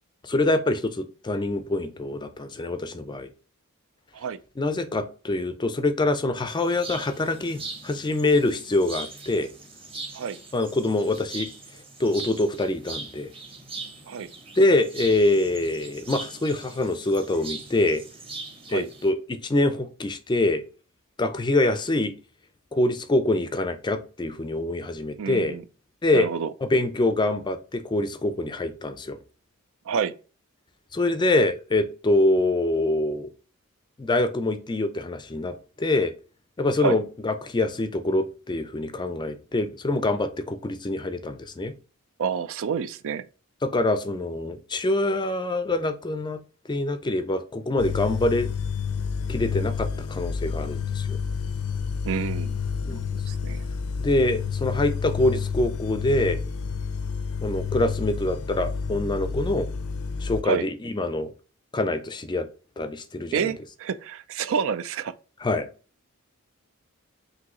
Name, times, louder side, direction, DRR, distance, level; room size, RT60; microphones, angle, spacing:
voice 1, 0.2-3.3 4.6-9.5 10.5-11.5 12.0-13.3 14.6-18.0 18.7-20.6 21.2-22.1 22.7-25.6 26.0-26.3 26.6-29.2 30.9-33.3 34.0-36.1 36.6-41.7 43.6-46.4 46.7-48.5 49.3-51.2 52.8-53.0 54.0-56.4 57.4-59.7 60.2-61.3 61.7-62.5 62.8-63.5 65.4-65.7, left 2 dB, 20° left, 0.4 m, -25 dB
sound 1, 6.5-19.1, right 3 dB, 25° right, 1.0 m, -40 dB
voice 2, 25.2-25.6 26.1-26.5 29.9-30.1 36.8-37.0 42.2-43.2 52.0-52.6 52.9-53.0 53.3-53.7 60.4-60.7 63.3-65.1, right 6 dB, 65° right, 0.4 m, -28 dB
sound 2, 47.8-60.4, left 6 dB, 80° left, 0.5 m, -30 dB
6.1 x 2.7 x 3.0 m
head